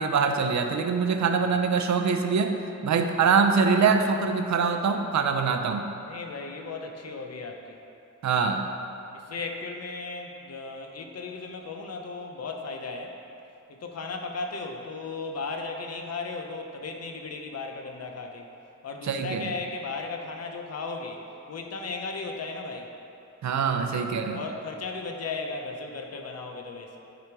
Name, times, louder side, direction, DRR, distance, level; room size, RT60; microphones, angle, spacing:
voice 1, 0.0-2.6 2.8-5.9 8.2-8.7 19.1-19.5 23.4-24.4, right 5 dB, 70° right, 6 dB, 0.6 m, -24 dB
voice 2, 1.1-1.6 6.0-7.8 9.1-13.2 13.7-18.5 18.8-21.2 21.5-22.9 24.3-27.0, left 3 dB, 55° left, 3 dB, 0.8 m, -36 dB
10.0 x 5.1 x 4.7 m, 2.8 s
wide cardioid pair, 175°, 30 cm